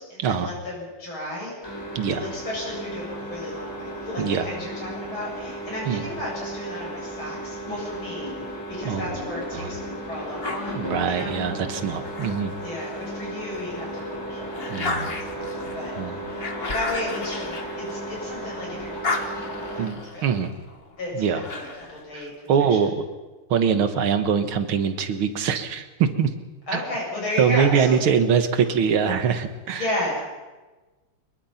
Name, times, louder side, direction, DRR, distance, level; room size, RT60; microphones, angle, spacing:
voice 1, 0.0-1.6 2.1-8.3 8.7-10.8 11.1-11.4 12.6-14.6 15.3-16.3 16.7-19.8 20.1-20.2 21.0-22.3 22.7-22.8 26.7-28.0 29.7-30.2, left 1 dB, 75° left, -4 dB, 9.0 m, -33 dB
sound 1, 1.6-19.9, right 1 dB, 10° left, 4.0 m, -34 dB
voice 2, 2.0-2.3 4.2-4.5 5.9-6.1 8.8-9.1 9.5-9.7 10.8-12.5 14.7-15.1 16.0-16.1 19.8-20.5 21.1-21.4 22.1-22.9 23.5-26.3 26.7-26.8 27.4-29.9, right 7 dB, 80° right, 9 dB, 2.2 m, -23 dB
sound 2, 10.4-13.1 13.6-18.4 18.7-22.0, left 3 dB, 30° left, 1.7 m, -34 dB
23.0 x 21.5 x 5.8 m, 1.2 s
omnidirectional pair, 2.3 m